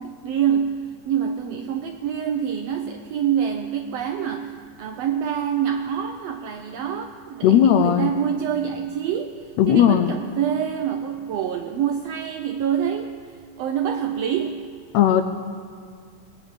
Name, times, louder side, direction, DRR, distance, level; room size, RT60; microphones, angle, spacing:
voice 1, 0.0-13.3 13.6-14.7, right 8 dB, 90° right, 6 dB, 1.4 m, -26 dB
voice 2, 7.4-8.1 9.6-10.1 14.9-15.2, left 10 dB, 80° left, 8 dB, 1.6 m, -16 dB
19.0 x 6.9 x 8.6 m, 2.1 s
omnidirectional pair, 3.5 m